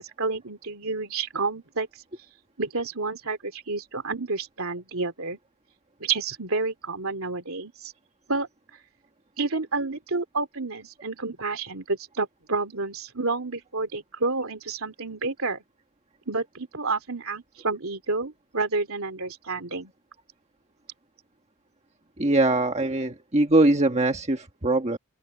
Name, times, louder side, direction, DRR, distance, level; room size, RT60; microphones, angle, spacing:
voice 1, 0.0-1.9 2.6-5.4 6.0-7.9 8.3-8.5 9.4-15.6 16.3-19.9, right 3 dB, 70° right, 3.0 m, -30 dB
voice 2, 22.2-25.0, right 2 dB, 30° right, 1.4 m, -22 dB
head